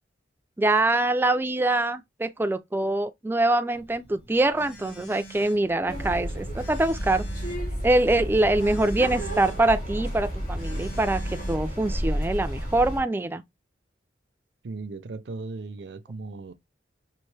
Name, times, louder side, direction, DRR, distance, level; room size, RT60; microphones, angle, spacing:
voice 1, 0.6-7.3 7.8-13.4, right 2 dB, 10° right, 0.3 m, -24 dB
Telephone, 3.7-12.3, right 2 dB, 65° left, 1.9 m, -47 dB
sound 1, 5.9-13.0, equal, 50° left, 2.5 m, -31 dB
voice 2, 14.6-16.5, right 3 dB, 70° right, 0.5 m, -37 dB
5.5 x 2.6 x 3.2 m
head